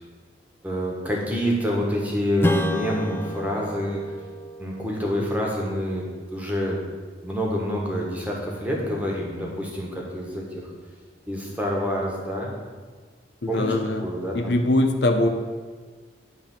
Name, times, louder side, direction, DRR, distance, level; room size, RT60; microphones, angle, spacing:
voice 1, 0.6-4.1 4.6-6.0 6.3-6.8 7.2-10.6 11.3-12.5 13.5-13.7 14.0-14.6, equal, 10° right, -2 dB, 1.5 m, -27 dB
Strum, 2.4-7.3, equal, 10° left, 0.4 m, -31 dB
voice 2, 13.4-14.0 14.3-15.3, left 1 dB, 70° left, 5 dB, 0.7 m, -21 dB
10.5 x 3.6 x 7.2 m, 1.5 s
head